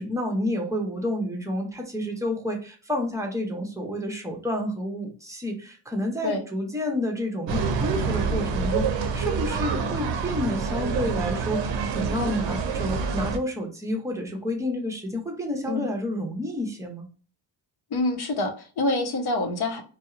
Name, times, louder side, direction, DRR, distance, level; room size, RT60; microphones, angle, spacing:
voice 1, 0.0-17.1, left 1 dB, 5° right, 2 dB, 0.7 m, -30 dB
sound 1, 7.5-13.4, right 5 dB, 75° right, 0.6 m, -27 dB
voice 2, 17.9-19.8, left 2 dB, 55° left, 4 dB, 0.7 m, -26 dB
2.6 x 2.0 x 2.3 m, 0.38 s
cardioid pair, 75°, 44 cm